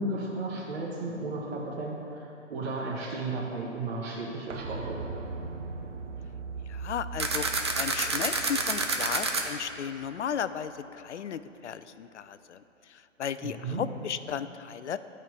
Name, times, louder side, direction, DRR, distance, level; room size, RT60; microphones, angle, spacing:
voice 1, 0.0-5.0 13.4-13.8, right 2 dB, 50° right, -3 dB, 1.3 m, -34 dB
sound 1, 4.5-10.1 10.4-10.5, right 4 dB, 65° right, 0.9 m, -40 dB
voice 2, 6.7-7.5 7.8-12.6 12.9-15.0, left 8 dB, 65° left, 13 dB, 0.5 m, -35 dB
sound 2, 7.2-9.4, right 3 dB, 25° right, 0.3 m, -28 dB
12.5 x 4.5 x 6.7 m, 2.9 s
figure-of-eight pair, 130°, 38 cm